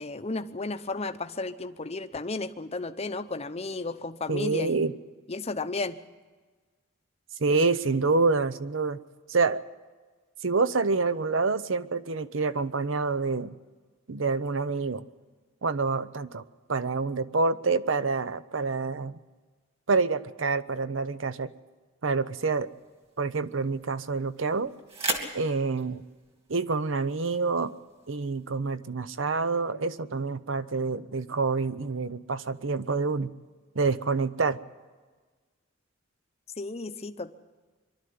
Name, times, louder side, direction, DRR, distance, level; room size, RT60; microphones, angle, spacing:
voice 1, 0.0-4.9 5.3-6.0 36.6-37.3, left 3 dB, 30° left, 10 dB, 0.8 m, -33 dB
voice 2, 4.3-4.9 7.4-9.0 9.3-9.6 10.4-13.5 14.1-15.0 15.6-16.4 16.7-19.2 19.9-21.5 22.0-22.7 23.2-24.7 25.3-26.0 26.5-27.7 28.1-33.3 33.7-34.6, right 4 dB, 65° right, 14 dB, 0.8 m, -27 dB
sound 1, 22.6-28.6, right 3 dB, 30° right, 2.3 m, -40 dB
23.5 x 12.5 x 9.5 m, 1.4 s
head